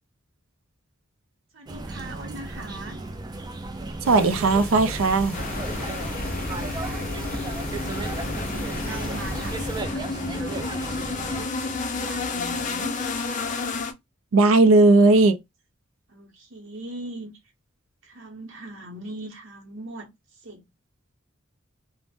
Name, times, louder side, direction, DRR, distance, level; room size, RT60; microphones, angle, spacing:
voice 1, 1.5-3.0 6.4-7.1 7.8-10.7 11.3-12.9 16.1-17.3 18.0-20.1 20.4-20.6, right 1 dB, 70° right, 0.8 m, -40 dB
sound 1, 1.7-11.5, right 2 dB, 20° right, 0.4 m, -35 dB
sound 2, 4.0-9.8, equal, 10° left, 0.8 m, -35 dB
voice 2, 4.1-5.4 14.3-15.4, right 3 dB, 85° right, 0.4 m, -17 dB
sound 3, 5.3-13.9, left 3 dB, 40° left, 0.4 m, -31 dB
2.5 x 2.0 x 3.4 m
head